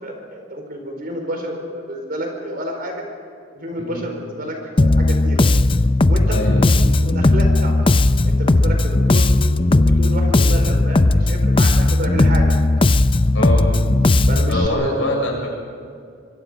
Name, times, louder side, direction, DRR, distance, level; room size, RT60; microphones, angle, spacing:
voice 1, 0.0-3.1 3.5-5.5 6.0-7.9 8.2-9.2 9.6-12.5 14.3-15.1, equal, 50° right, 2 dB, 4.7 m, -29 dB
Bass guitar, 4.8-14.7, left 2 dB, 25° left, 0.5 m, -16 dB
voice 2, 6.3-6.7 13.3-13.7 14.5-15.5, left 1 dB, 90° left, -1 dB, 6.3 m, -23 dB
24.5 x 24.5 x 5.2 m, 2.2 s
head